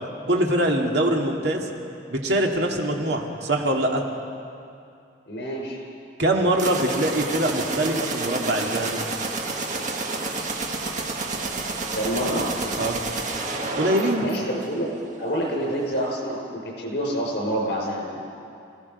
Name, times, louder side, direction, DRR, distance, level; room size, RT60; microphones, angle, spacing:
voice 1, 0.3-1.7 2.1-4.0 6.2-9.0 12.8-13.0 13.7-14.2, right 1 dB, 65° right, 0 dB, 2.4 m, -23 dB
voice 2, 5.3-5.8 11.9-12.5 14.2-14.9 15.2-18.3, equal, 70° left, -1 dB, 6.0 m, -27 dB
sound 1, 6.5-15.2, right 3 dB, 45° right, 1.8 m, -30 dB
28.5 x 16.5 x 5.5 m, 2.5 s
head